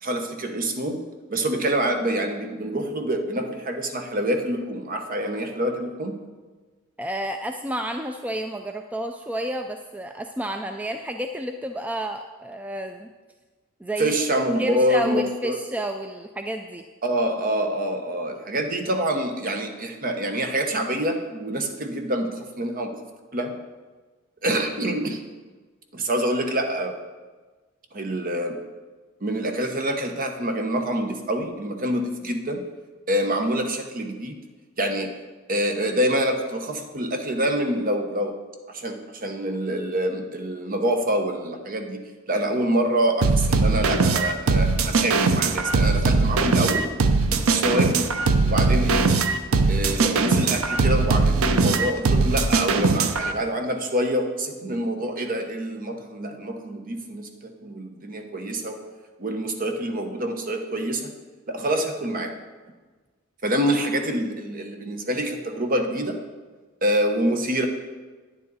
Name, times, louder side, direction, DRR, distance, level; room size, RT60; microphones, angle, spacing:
voice 1, 0.0-1.0 1.3-6.2 14.0-15.6 17.0-23.0 23.3-23.5 24.4-25.2 25.9-26.9 27.9-28.6 29.2-32.7 33.1-34.4 34.8-35.1 35.5-38.3 38.7-46.9 47.3-48.1 48.4-49.1 49.7-58.8 59.2-61.1 61.5-62.3 63.4-66.2 66.8-67.7, right 1 dB, 45° right, 5 dB, 0.9 m, -26 dB
voice 2, 7.0-13.1 13.8-14.2 14.6-16.8, right 1 dB, 5° right, 5 dB, 0.3 m, -30 dB
sound 1, 43.2-53.3, right 4 dB, 90° right, 0.6 m, -20 dB
9.7 x 9.4 x 4.0 m, 1.3 s
head